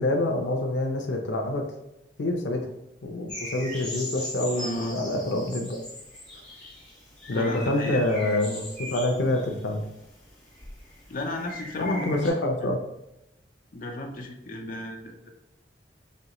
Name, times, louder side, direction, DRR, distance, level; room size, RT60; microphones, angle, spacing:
voice 1, 0.0-1.6 2.2-2.7 3.0-5.8 7.3-9.8 11.7-12.8, left 1 dB, 90° left, 3 dB, 0.6 m, -26 dB
sound 1, 3.3-12.3, left 1 dB, 5° left, 1.6 m, -40 dB
voice 2, 4.5-5.0 7.3-8.0 11.1-12.1 12.6-12.7 13.7-15.3, left 2 dB, 50° left, 1 dB, 0.6 m, -34 dB
5.3 x 3.0 x 2.9 m, 0.88 s
head